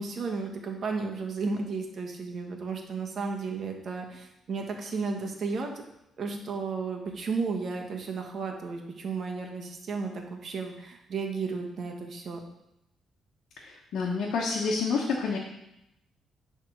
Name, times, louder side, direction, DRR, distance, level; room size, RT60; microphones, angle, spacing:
voice 1, 0.0-5.7 6.2-12.4, right 4 dB, 55° right, 2 dB, 1.3 m, -33 dB
voice 2, 13.6-15.4, left 4 dB, 70° left, -2 dB, 1.1 m, -28 dB
10.0 x 3.6 x 4.6 m, 0.85 s
cardioid pair, 90°, 0 cm